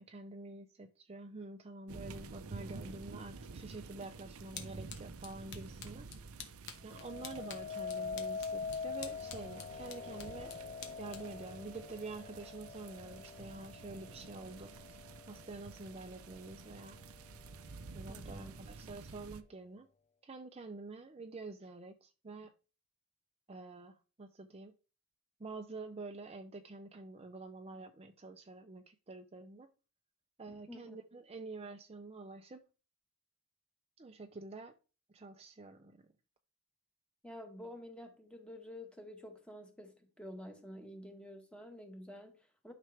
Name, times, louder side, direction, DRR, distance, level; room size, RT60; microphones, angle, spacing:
voice 1, 0.0-6.1 6.8-10.5 11.0-15.0 15.3-17.0 17.9-19.9 20.2-22.5 23.5-24.7 25.4-29.7 30.4-32.6 34.0-34.7 35.1-36.0, right 3 dB, 30° right, 0.6 m, -48 dB
sound 1, 1.9-19.4, right 4 dB, 80° right, 0.7 m, -50 dB
sound 2, 4.6-12.6, left 7 dB, 55° left, 1.5 m, -53 dB
sound 3, 6.9-16.0 16.6-17.0, left 5 dB, 30° left, 0.4 m, -44 dB
voice 2, 18.1-18.5 30.5-31.0 37.2-42.7, left 1 dB, 5° left, 1.5 m, -50 dB
11.5 x 5.9 x 3.4 m
head